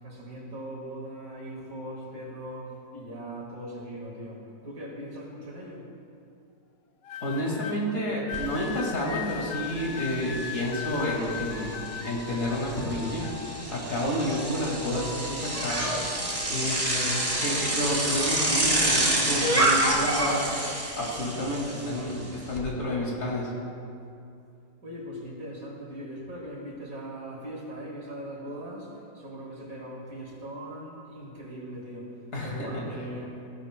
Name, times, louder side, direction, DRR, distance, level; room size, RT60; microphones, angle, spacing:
voice 1, 0.0-5.9 24.8-32.1 32.4-33.4, right 1 dB, 60° right, -2 dB, 2.3 m, -40 dB
sound 1, 7.0-7.8 8.3-13.8 14.2-16.8 17.1-19.6 20.4-20.7, left 8 dB, 75° left, 0.5 m, -40 dB
voice 2, 7.2-16.0 16.2-20.5 20.9-23.5 32.3-32.8, left 1 dB, 50° left, -4 dB, 2.5 m, -30 dB
Bicycle, 8.3-8.4 8.8-22.6, right 1 dB, 25° right, 1.2 m, -28 dB
15.5 x 11.0 x 2.2 m, 2.5 s
omnidirectional pair, 1.7 m